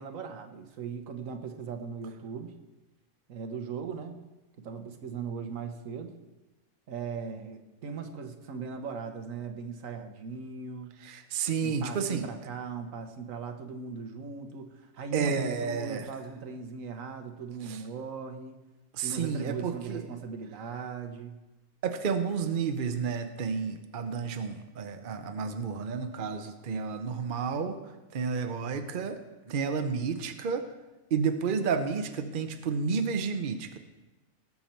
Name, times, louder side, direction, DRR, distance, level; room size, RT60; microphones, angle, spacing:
voice 1, 0.0-2.6 3.3-4.2 4.6-6.2 6.9-10.9 11.6-18.5 19.0-21.4, right 5 dB, 75° right, 7 dB, 1.3 m, -39 dB
voice 2, 11.0-12.3 15.1-16.1 17.6-17.8 18.9-20.0 21.8-27.8 28.1-29.2 29.5-30.6 31.1-33.8, right 5 dB, 45° right, 7 dB, 0.8 m, -31 dB
17.5 x 7.1 x 4.4 m, 1.1 s
omnidirectional pair, 1.4 m